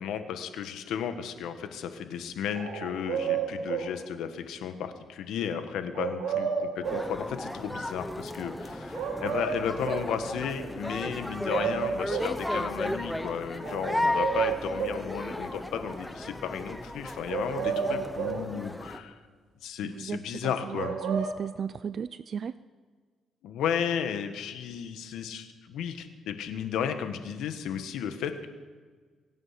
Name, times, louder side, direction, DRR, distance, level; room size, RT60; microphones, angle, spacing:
voice 1, 0.0-19.2 19.6-21.0 23.4-28.5, left 8 dB, 85° left, 8 dB, 1.4 m, -34 dB
sound 1, 2.5-4.0 5.9-7.1 8.9-10.1 11.2-11.3 11.5-12.4 13.6-15.1 17.3-18.5 20.7-21.3, right 7 dB, 85° right, 2.8 m, -31 dB
sound 2, 6.8-19.0, left 1 dB, 5° left, 1.0 m, -35 dB
voice 2, 11.6-11.9 17.6-18.1 19.8-22.5, right 7 dB, 50° right, 15 dB, 0.4 m, -36 dB
23.5 x 9.1 x 5.9 m, 1.5 s
cardioid pair, 90°, 0 cm